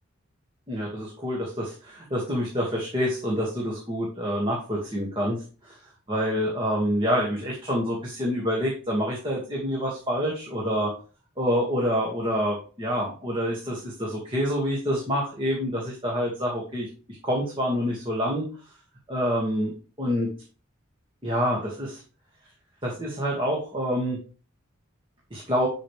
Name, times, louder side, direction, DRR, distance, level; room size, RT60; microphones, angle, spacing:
voice 1, 0.7-5.4 6.1-10.9 11.4-16.9 17.2-18.4 19.1-19.7 20.0-20.3 21.2-22.0 22.8-24.2 25.3-25.7, equal, 25° right, -3 dB, 2.0 m, -27 dB
11.0 x 5.1 x 3.4 m, 0.37 s
head